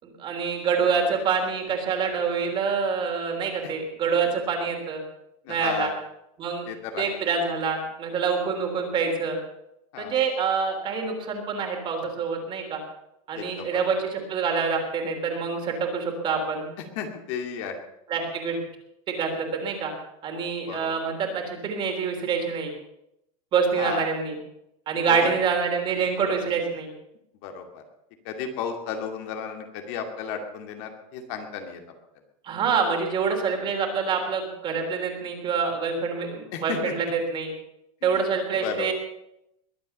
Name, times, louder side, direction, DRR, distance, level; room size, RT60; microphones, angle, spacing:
voice 1, 0.0-5.0 5.5-5.9 6.4-6.7 7.0-9.4 10.0-12.8 13.3-16.7 18.1-18.6 19.1-19.9 20.2-22.7 23.5-24.3 24.9-26.9 32.4-37.5 38.0-38.9, right 5 dB, 25° right, 3 dB, 3.4 m, -26 dB
voice 2, 5.4-5.9 6.7-7.1 9.9-10.2 13.3-13.8 17.0-17.8 20.7-21.0 23.8-24.0 25.1-25.2 27.4-27.8 28.2-31.8 36.5-36.9 38.0-38.2 38.6-38.9, left 7 dB, 50° left, 4 dB, 2.4 m, -33 dB
21.5 x 8.6 x 6.7 m, 0.82 s
supercardioid pair, 160°, 18 cm